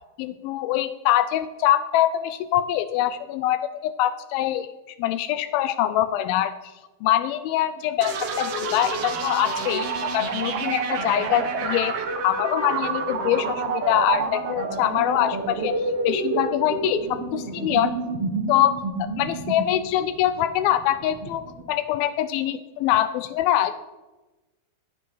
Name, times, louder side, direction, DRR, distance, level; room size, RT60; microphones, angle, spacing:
voice 1, 0.2-4.7 5.0-6.5 7.0-11.9 12.2-17.9 18.5-23.7, left 12 dB, 80° left, 12 dB, 2.2 m, -24 dB
sound 1, 8.0-21.6, right 4 dB, 65° right, 1.5 m, -29 dB
17.5 x 9.3 x 4.7 m, 1.1 s
omnidirectional pair, 4.6 m